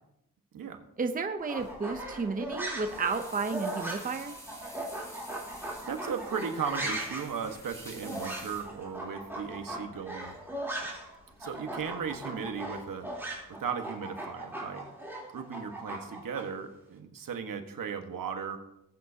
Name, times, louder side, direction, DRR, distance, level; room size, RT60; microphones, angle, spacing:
voice 1, 1.0-4.3, right 4 dB, 25° right, 7 dB, 0.7 m, -32 dB
sound 1, 1.4-11.1 11.4-16.4, right 1 dB, 5° right, 3.4 m, -38 dB
sound 2, 1.6-13.7, equal, 10° left, 4.4 m, -51 dB
voice 2, 5.8-10.3 11.4-13.1 13.5-14.8 15.3-18.6, right 6 dB, 75° right, 6 dB, 1.4 m, -36 dB
19.0 x 9.0 x 2.8 m, 0.83 s
wide cardioid pair, 125°, 33 cm